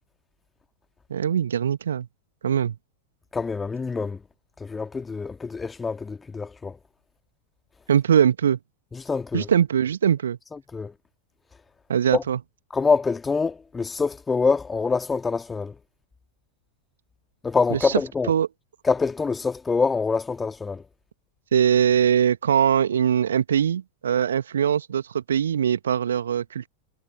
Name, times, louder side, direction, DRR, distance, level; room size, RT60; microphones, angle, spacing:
voice 1, 1.1-2.1 2.4-2.8 7.9-8.6 9.3-10.4 11.9-12.4 17.7-18.0 18.3-18.5 21.5-26.7, right 8 dB, 65° right, 2.0 m, -21 dB
voice 2, 3.3-4.2 4.6-6.8 8.9-9.5 10.5-10.9 12.1-12.2 12.7-15.8 17.4-18.3 18.8-20.8, left 4 dB, 15° left, 2.1 m, -25 dB
figure-of-eight pair, 90°, 0 cm